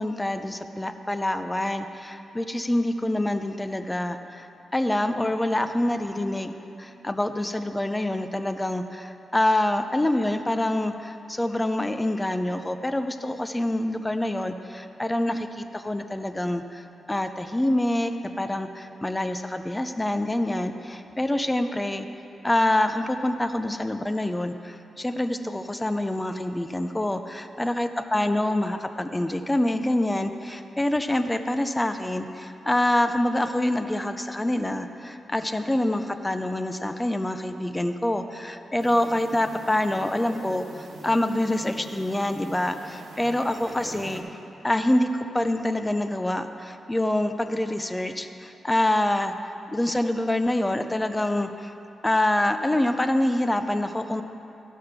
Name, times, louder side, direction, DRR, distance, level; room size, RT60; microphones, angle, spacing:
voice 1, 0.0-4.5 4.7-6.5 6.8-16.8 17.1-22.1 22.4-44.2 44.6-49.3 49.7-51.7 52.0-54.2, left 1 dB, 10° left, 8 dB, 0.4 m, -26 dB
sound 1, 38.8-44.2, right 2 dB, 75° right, 1.4 m, -43 dB
14.5 x 5.0 x 5.9 m, 2.8 s
wide cardioid pair, 145°, 0 cm